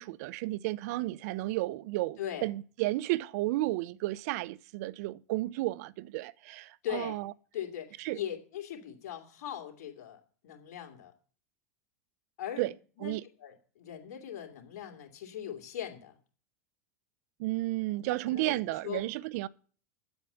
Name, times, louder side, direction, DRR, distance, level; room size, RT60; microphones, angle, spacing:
voice 1, 0.0-7.3 8.0-8.2 12.6-12.7 13.0-13.2 17.4-19.5, right 18 dB, 65° right, 0.5 m, -33 dB
voice 2, 2.2-2.5 6.8-7.2 7.5-11.1 12.4-12.7 13.0-16.1 18.1-19.0, left 10 dB, 70° left, 2.8 m, -40 dB
9.9 x 7.9 x 6.9 m
hypercardioid pair, 95°, 9 cm